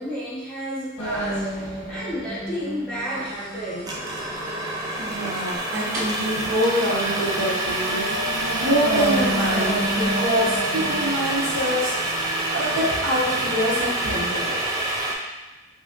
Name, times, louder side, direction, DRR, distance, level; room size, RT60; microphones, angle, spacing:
voice 1, 0.0-4.0, equal, 5° left, -10 dB, 1.1 m, -32 dB
sound 1, 1.0-14.5, right 1 dB, 90° left, 1.2 m, -32 dB
sound 2, 3.0-11.8, right 2 dB, 45° right, 1.1 m, -35 dB
sound 3, 3.9-15.1, right 1 dB, 20° right, 0.5 m, -27 dB
voice 2, 5.0-14.6, equal, 85° right, -6 dB, 1.1 m, -26 dB
4.8 x 2.9 x 2.5 m, 1.1 s
head